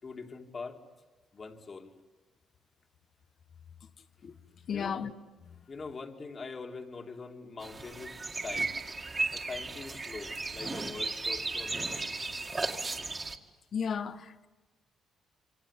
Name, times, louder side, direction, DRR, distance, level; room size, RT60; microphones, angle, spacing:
voice 1, 0.0-0.8 1.3-1.9 4.7-5.0 5.7-8.7 9.3-12.1, left 4 dB, 40° left, 2.7 m, -43 dB
voice 2, 4.7-5.1 13.7-14.5, left 7 dB, 55° left, 1.3 m, -33 dB
sound 1, 7.6-13.4, right 3 dB, 25° right, 2.0 m, -35 dB
27.0 x 25.5 x 8.4 m
cardioid pair, 90°, 0 cm